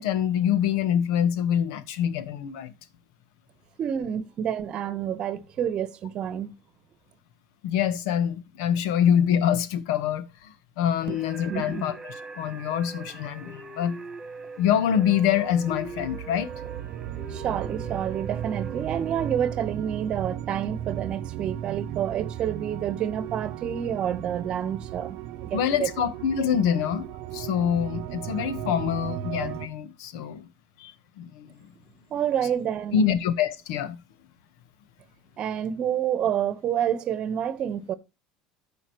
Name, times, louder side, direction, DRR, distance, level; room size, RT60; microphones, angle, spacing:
voice 1, 0.0-2.7 7.6-14.0 14.6-16.5 25.5-30.5 30.8-31.5 32.9-34.0, left 9 dB, 80° left, 1.2 m, -25 dB
voice 2, 3.8-6.5 11.1-11.2 11.5-11.9 17.3-25.9 32.1-33.2 35.4-37.9, right 9 dB, 45° right, 1.1 m, -29 dB
sound 1, 11.0-19.3, right 3 dB, 20° right, 2.4 m, -41 dB
sound 2, 14.7-29.7, right 11 dB, 65° right, 0.7 m, -36 dB
14.5 x 5.1 x 3.1 m
supercardioid pair, 110°, 2 cm